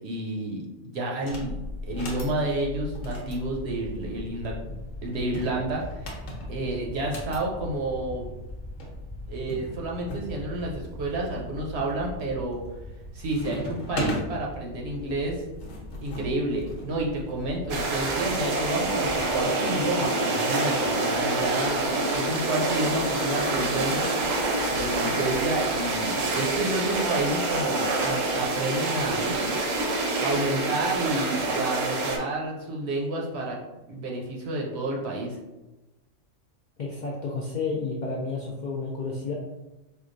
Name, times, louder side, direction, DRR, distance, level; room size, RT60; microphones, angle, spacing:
voice 1, 0.0-1.6 1.8-4.7 5.0-6.2 6.5-8.3 9.3-12.6 13.1-15.5 16.0-21.9 22.1-24.1 24.7-29.4 30.2-33.6 33.9-35.4, right 2 dB, 65° right, -2 dB, 0.8 m, -30 dB
sound 1, 1.2-1.5 1.9-2.4 3.0-4.3 5.1-7.4 8.5-8.6 8.8-8.9 9.5-10.3 10.8-11.4 11.9-12.3 12.6-13.0 13.3-14.3 15.2-18.2 19.1-20.2, equal, 85° left, 1.2 m, -37 dB
sound 2, 1.3-19.4, left 1 dB, 15° left, 1.2 m, -40 dB
sound 3, 17.7-32.2, right 2 dB, 85° right, 1.0 m, -27 dB
voice 2, 36.8-39.3, left 4 dB, 65° left, -4 dB, 0.4 m, -31 dB
4.5 x 2.3 x 2.5 m, 1.0 s
omnidirectional pair, 1.3 m